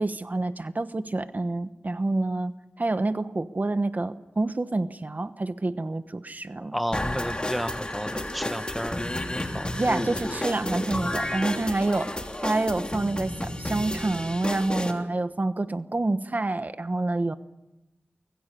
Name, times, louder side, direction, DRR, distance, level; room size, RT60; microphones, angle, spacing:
voice 1, 0.0-2.5 2.8-6.7 9.8-17.4, right 2 dB, 45° right, 11 dB, 1.1 m, -28 dB
voice 2, 6.7-9.0 9.3-9.8, equal, ahead, 10 dB, 1.3 m, -32 dB
sound 1, 6.9-14.9, left 1 dB, 25° left, 3.2 m, -31 dB
24.5 x 22.0 x 6.9 m, 0.95 s
wide cardioid pair, 55°, 4 cm